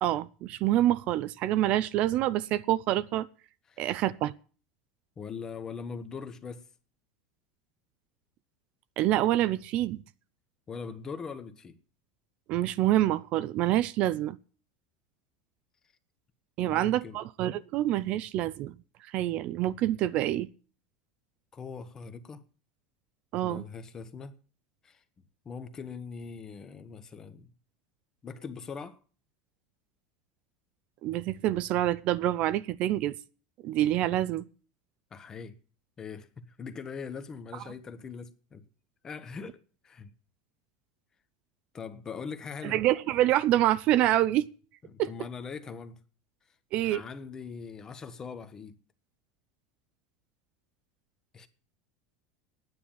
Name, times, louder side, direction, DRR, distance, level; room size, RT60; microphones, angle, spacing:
voice 1, 0.0-3.3 3.8-4.3 9.0-10.0 12.5-14.4 16.6-18.7 19.1-20.5 23.3-23.6 31.0-33.2 33.6-34.4 42.6-44.5 45.0-45.1 46.7-47.0, right 13 dB, 45° right, 0.5 m, -26 dB
voice 2, 5.2-6.7 10.7-11.8 16.6-17.2 21.5-22.4 23.4-24.4 24.8-25.0 25.4-27.5 28.2-29.0 35.1-35.6 36.0-38.7 39.0-40.1 41.7-42.8 44.9-46.0 46.9-48.8 51.3-51.5, left 5 dB, 20° left, 1.1 m, -41 dB
10.0 x 9.6 x 7.2 m
supercardioid pair, 140°, 3 cm